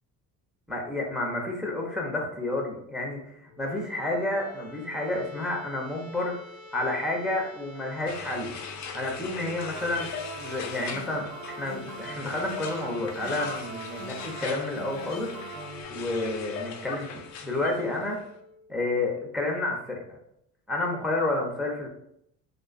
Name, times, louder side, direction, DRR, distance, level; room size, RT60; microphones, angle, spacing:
voice 1, 0.7-6.4 6.7-8.6 8.9-10.1 10.3-15.3 15.9-18.2 18.7-20.0 20.7-21.9, left 2 dB, ahead, 0 dB, 0.6 m, -30 dB
sound 1, 3.5-19.3, left 2 dB, 80° left, 0.7 m, -48 dB
sound 2, 8.1-18.1, left 6 dB, 50° left, 0.4 m, -40 dB
sound 3, 9.8-15.8, right 3 dB, 80° right, 0.6 m, -42 dB
2.4 x 2.3 x 2.4 m, 0.75 s
supercardioid pair, 75°, 39 cm